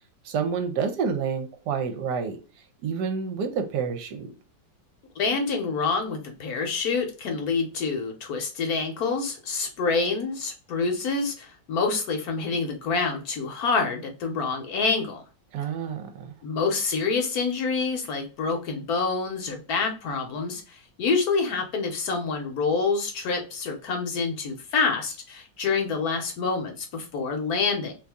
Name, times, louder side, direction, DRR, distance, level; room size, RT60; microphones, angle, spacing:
voice 1, 0.2-2.4 2.8-4.3 15.5-16.3, right 6 dB, 75° right, 1.2 m, -28 dB
voice 2, 5.2-15.2 16.4-27.9, left 4 dB, 65° left, 1.1 m, -27 dB
2.9 x 2.6 x 3.4 m
omnidirectional pair, 1.9 m